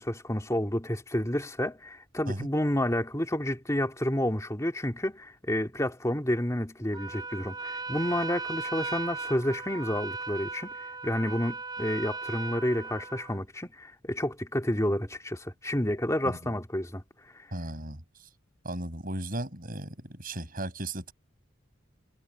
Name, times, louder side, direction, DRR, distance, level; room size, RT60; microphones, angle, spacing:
voice 1, 0.0-10.7 11.0-17.0, left 1 dB, 15° left, 2.7 m, -30 dB
Trumpet, 6.9-13.4, right 3 dB, 20° right, 6.1 m, -37 dB
voice 2, 17.5-18.0 18.6-21.1, right 1 dB, 40° right, 6.5 m, -35 dB
head